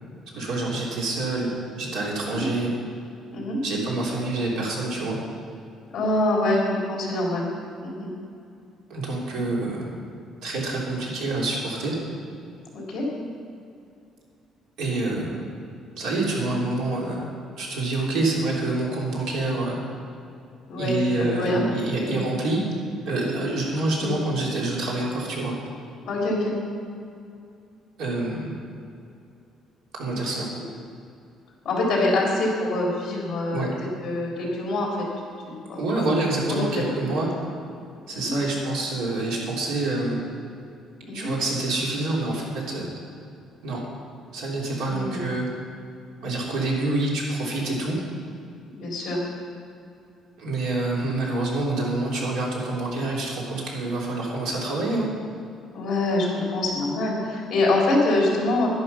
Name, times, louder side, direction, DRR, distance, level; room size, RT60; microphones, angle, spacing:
voice 1, 0.3-1.5 1.8-2.7 3.6-5.2 8.9-9.8 10.4-11.9 14.8-15.4 16.0-19.8 20.8-22.6 23.1-25.5 28.0-28.5 29.9-30.5 33.5-33.7 35.8-37.3 38.1-40.2 41.1-42.9 43.6-43.8 44.3-45.5 46.2-48.0 50.4-55.1, right 2 dB, 75° right, -3 dB, 3.6 m, -27 dB
voice 2, 5.9-7.5 7.8-8.1 12.7-13.1 20.7-21.7 22.0-22.2 24.0-24.1 26.1-26.5 31.6-33.7 34.0-35.0 35.4-36.1 36.5-37.3 38.1-38.3 41.1-41.3 44.9-45.4 48.7-49.2 55.7-58.7, left 2 dB, 40° left, -3 dB, 3.6 m, -25 dB
11.5 x 11.5 x 5.8 m, 2.5 s
cardioid pair, 180°, 0 cm